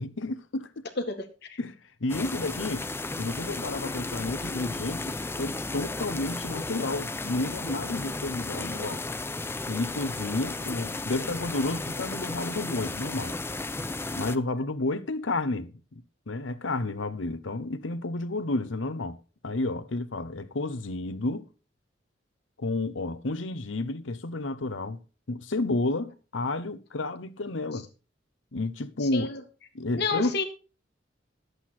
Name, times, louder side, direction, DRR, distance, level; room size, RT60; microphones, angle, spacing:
voice 1, 0.0-0.8 1.6-2.9 3.2-9.1 9.7-13.4 14.2-19.2 19.4-21.5 22.6-25.0 25.3-27.9 28.5-29.3 29.7-30.4, left 2 dB, 85° left, 0.9 m, -31 dB
voice 2, 1.0-1.6 8.6-8.9 29.1-29.4 30.0-30.4, left 4 dB, 60° left, 1.8 m, -31 dB
sound 1, 2.1-14.4, left 2 dB, 10° left, 0.4 m, -34 dB
11.5 x 8.1 x 4.3 m
head